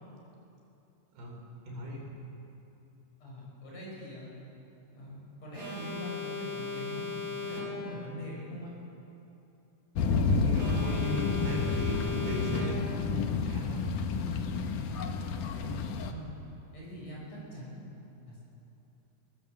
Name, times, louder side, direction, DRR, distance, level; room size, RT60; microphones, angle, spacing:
voice 1, 1.7-2.2 10.2-12.9 13.4-13.9, equal, 85° right, -1 dB, 6.2 m, -37 dB
voice 2, 3.2-4.3 4.9-8.7 15.6-16.3 16.7-17.8 18.3-18.4, equal, 40° left, -4 dB, 7.4 m, -43 dB
Alarm, 5.5-8.1 10.5-13.1, left 5 dB, 35° right, 4.3 m, -38 dB
sound 1, 10.0-16.1, left 4 dB, 65° left, 2.3 m, -30 dB
21.0 x 20.5 x 7.6 m, 2.8 s
omnidirectional pair, 4.6 m